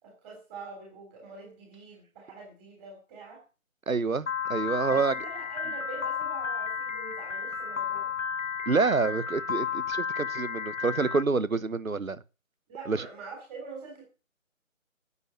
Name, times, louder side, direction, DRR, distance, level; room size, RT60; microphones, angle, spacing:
voice 1, 0.0-3.4 4.9-8.1 12.7-14.0, right 4 dB, 10° right, 3.6 m, -44 dB
voice 2, 3.9-5.1 8.7-12.2 12.9-13.0, right 4 dB, 75° right, 1.1 m, -27 dB
Piano, 4.3-11.2, left 6 dB, 65° left, 1.1 m, -33 dB
9.7 x 8.6 x 7.4 m
figure-of-eight pair, 155°, 41 cm